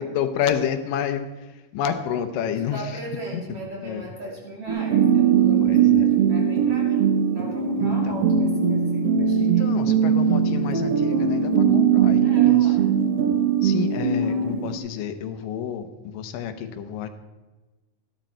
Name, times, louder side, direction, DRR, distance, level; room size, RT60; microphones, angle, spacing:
voice 1, 0.0-3.0 3.3-3.4 3.8-4.1 5.6-6.1 7.8-8.2 9.4-12.8 13.6-17.1, left 8 dB, 85° left, 8 dB, 2.5 m, -30 dB
voice 2, 2.4-9.7 12.2-12.9 14.2-14.8, right 1 dB, 45° right, -3 dB, 3.8 m, -37 dB
sound 1, 4.7-14.8, right 7 dB, 60° right, 1.6 m, -20 dB
14.0 x 11.5 x 4.4 m, 1.2 s
omnidirectional pair, 3.8 m